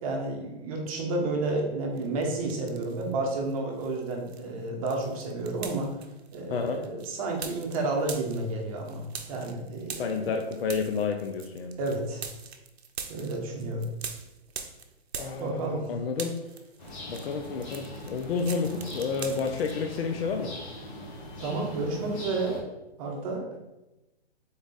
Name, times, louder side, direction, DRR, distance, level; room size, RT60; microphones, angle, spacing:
voice 1, 0.0-5.9 6.3-9.9 11.8-12.2 13.1-13.8 15.4-15.9 21.4-22.7 23.0-23.6, right 2 dB, 35° right, 1 dB, 1.0 m, -31 dB
sound 1, 2.0-3.1 3.5-20.0, right 6 dB, 70° right, 0.7 m, -43 dB
voice 2, 6.5-6.8 9.9-11.8 15.2-16.4 17.1-20.5, left 5 dB, 65° left, 4 dB, 0.6 m, -30 dB
sound 2, 16.8-22.6, left 1 dB, 30° left, 1.3 m, -41 dB
3.9 x 3.5 x 3.9 m, 0.99 s
hypercardioid pair, 145°, 32 cm